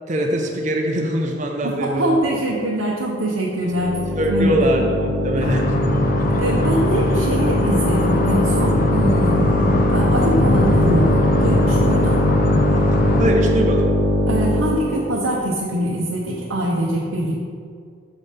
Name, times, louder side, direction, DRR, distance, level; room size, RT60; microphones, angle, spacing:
voice 1, 0.1-2.3 4.2-5.7 13.2-13.9, right 1 dB, 35° right, 1 dB, 0.6 m, -22 dB
voice 2, 1.6-4.0 4.3-4.8 5.4-5.5 6.4-9.6 9.9-12.2 14.3-17.4, right 1 dB, 90° right, -4 dB, 0.8 m, -23 dB
sound 1, 3.7-14.9, left 1 dB, 10° right, 1.2 m, -20 dB
sound 2, 5.4-13.3, left 2 dB, 45° left, 0.5 m, -22 dB
6.1 x 4.4 x 5.0 m, 2.2 s
head